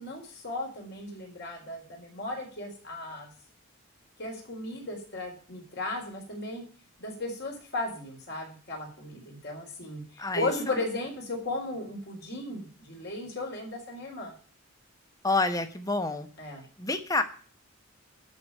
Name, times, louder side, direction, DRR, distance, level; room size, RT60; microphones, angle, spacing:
voice 1, 0.0-3.3 4.2-6.6 7.0-10.0 10.3-14.3 16.4-16.6, left 2 dB, 50° left, 0 dB, 4.3 m, -35 dB
voice 2, 10.2-10.8 15.2-16.3 16.8-17.2, left 3 dB, 15° left, 8 dB, 1.1 m, -28 dB
13.0 x 5.2 x 8.9 m, 0.41 s
head